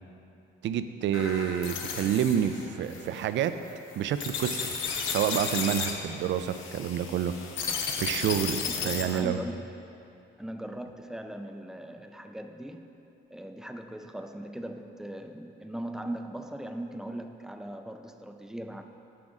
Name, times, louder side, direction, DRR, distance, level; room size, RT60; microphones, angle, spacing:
voice 1, 0.6-3.6 4.0-7.3 8.0-9.4, right 9 dB, 70° right, 11 dB, 0.4 m, -28 dB
sound 1, 1.1-9.2, left 5 dB, 90° left, 0.7 m, -34 dB
voice 2, 8.7-9.6 10.4-12.9 13.3-18.8, right 1 dB, 5° right, 6 dB, 0.4 m, -39 dB
7.7 x 6.0 x 3.7 m, 2.8 s
cardioid pair, 90°, 20 cm